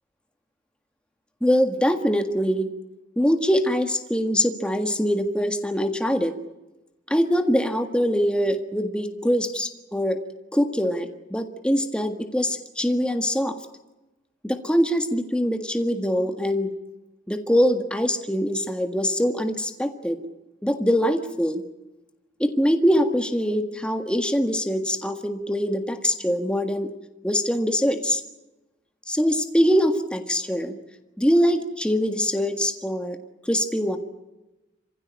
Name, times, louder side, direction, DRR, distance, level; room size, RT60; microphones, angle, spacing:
voice 1, 1.4-2.7 3.2-6.3 7.1-10.2 10.5-13.6 14.4-16.7 17.3-20.2 20.6-21.6 22.4-26.9 27.2-28.2 29.1-30.8 31.2-33.2 33.4-34.0, equal, 5° left, 6 dB, 1.7 m, -23 dB
28.0 x 16.0 x 10.0 m, 1.0 s
head